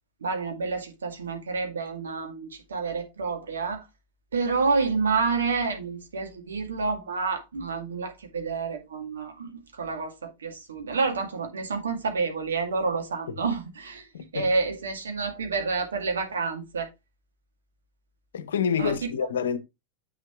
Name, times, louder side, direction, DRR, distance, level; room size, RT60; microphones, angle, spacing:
voice 1, 0.2-3.8 4.3-14.1 14.3-16.9 18.8-19.1, right 4 dB, 70° right, 2.0 m, -29 dB
voice 2, 14.1-14.5 18.3-19.6, left 7 dB, 65° left, 0.8 m, -27 dB
8.0 x 6.5 x 3.1 m
figure-of-eight pair, 90°, 0 cm